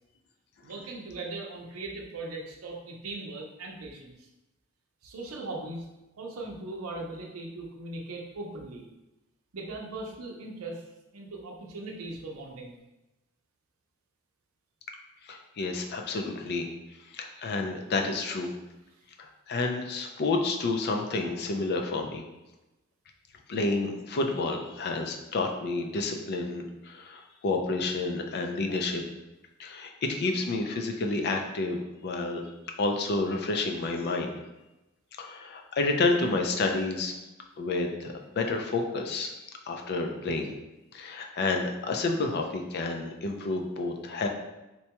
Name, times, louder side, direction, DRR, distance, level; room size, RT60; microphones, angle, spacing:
voice 1, 0.6-4.3 5.0-5.9 6.2-8.8 9.5-10.9 11.1-12.8 18.9-19.0, right 2 dB, 80° right, -1 dB, 0.6 m, -39 dB
voice 2, 15.2-16.7 17.0-18.5 19.5-22.3 23.5-29.0 29.6-32.4 32.8-34.4 35.2-37.1 37.6-39.3 39.7-40.5 40.9-44.3, left 3 dB, 50° left, 3 dB, 0.4 m, -30 dB
4.2 x 2.2 x 2.8 m, 1.0 s
head